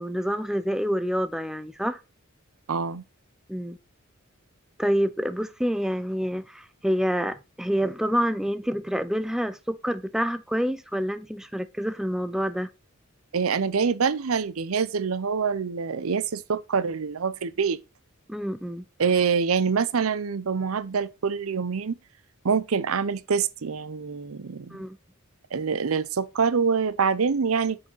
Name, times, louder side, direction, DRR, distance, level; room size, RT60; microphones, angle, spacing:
voice 1, 0.0-2.0 3.5-3.8 4.8-12.7 18.3-18.8 24.7-25.0, equal, ahead, 0.5 m, -27 dB
voice 2, 2.7-3.0 13.3-17.8 19.0-22.0 22.4-24.8 25.5-27.8, right 5 dB, 85° right, 0.6 m, -25 dB
8.6 x 5.0 x 4.0 m
head